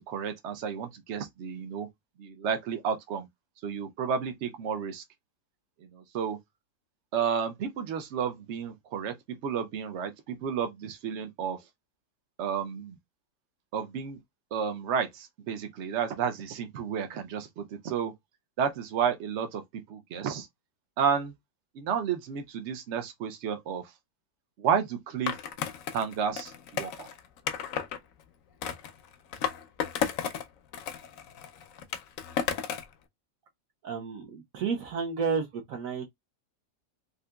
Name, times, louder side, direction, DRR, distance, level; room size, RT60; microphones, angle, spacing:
voice 1, 0.1-1.9 2.2-3.3 3.6-5.0 5.8-6.4 7.1-9.2 9.4-11.6 12.4-13.0 13.7-14.2 14.5-18.1 18.6-19.6 19.9-20.5 21.0-21.3 21.7-23.9 24.6-25.4 25.9-27.1, right 7 dB, 80° right, 0.6 m, -31 dB
Skateboard, 25.3-28.0 28.6-30.5 30.7-32.9, left 8 dB, 70° left, 0.8 m, -33 dB
voice 2, 33.8-36.0, right 5 dB, 65° right, 0.9 m, -31 dB
3.7 x 2.7 x 2.2 m
omnidirectional pair, 1.9 m